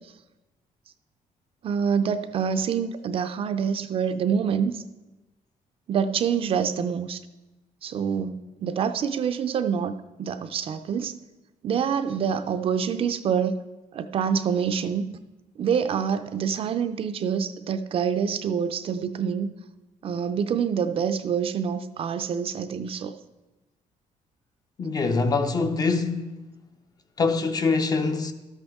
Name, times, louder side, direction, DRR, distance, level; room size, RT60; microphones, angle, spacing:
voice 1, 1.6-4.8 5.9-7.2 7.8-11.2 11.6-13.6 13.9-15.2 15.6-19.5 20.0-23.1, right 7 dB, 40° right, 0.4 m, -26 dB
voice 2, 24.8-26.4 27.2-28.3, left 4 dB, 30° left, 0.5 m, -24 dB
12.5 x 8.0 x 3.5 m
cardioid pair, 165°, 14 cm